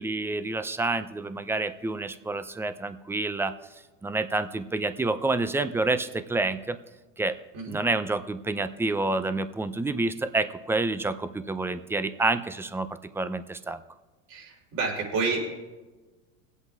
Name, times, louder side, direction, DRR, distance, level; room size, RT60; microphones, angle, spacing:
voice 1, 0.0-3.5 4.0-6.8 7.2-7.4 7.7-12.9 13.1-13.8, right 2 dB, 5° right, 11 dB, 0.5 m, -28 dB
voice 2, 14.3-15.5, right 4 dB, 60° right, -2 dB, 3.6 m, -29 dB
21.5 x 8.2 x 2.4 m, 1.2 s
hypercardioid pair, 90°, 37 cm